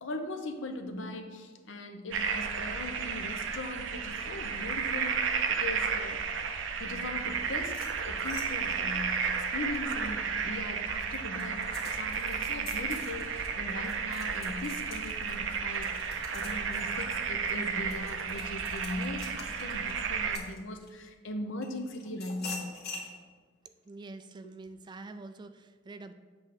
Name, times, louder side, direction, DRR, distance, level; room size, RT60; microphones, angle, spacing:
voice 1, 0.0-6.2 6.8-7.8 8.0-15.9 16.3-22.7 24.4-24.5, left 1 dB, 75° left, 6 dB, 0.8 m, -39 dB
sound 1, 2.1-20.4, right 6 dB, 75° right, 0.6 m, -33 dB
sound 2, 7.7-10.5 10.9-21.1 21.6-23.1, left 4 dB, 55° left, 2.0 m, -46 dB
voice 2, 23.9-26.1, right 3 dB, 25° right, 9 dB, 0.3 m, -46 dB
8.2 x 3.4 x 6.6 m, 1.5 s
head